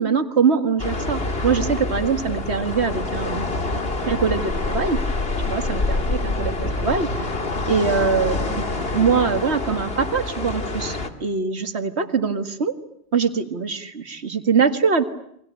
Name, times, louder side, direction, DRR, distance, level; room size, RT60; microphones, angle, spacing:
voice 1, 0.0-3.5 4.1-5.0 5.5-7.3 7.7-8.4 8.9-12.7 13.1-15.0, right 5 dB, 85° right, 9 dB, 2.1 m, -23 dB
sound 1, 0.8-11.1, left 2 dB, 65° left, 2.5 m, -26 dB
29.5 x 23.5 x 8.2 m, 0.72 s
omnidirectional pair, 1.1 m